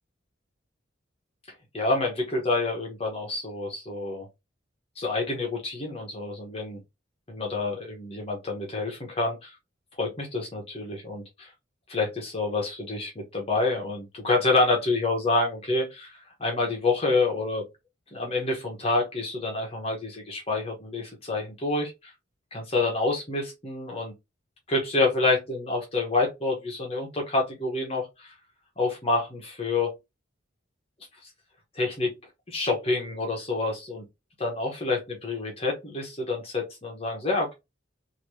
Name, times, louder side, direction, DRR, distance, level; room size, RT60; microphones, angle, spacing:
voice 1, 1.7-4.3 5.0-6.8 7.3-9.6 10.0-11.5 11.9-17.6 18.1-22.1 22.5-24.1 24.7-28.3 28.8-29.9 31.7-32.1 32.5-34.0 34.4-37.5, left 3 dB, 30° left, 1.0 m, -28 dB
3.1 x 2.8 x 2.7 m
head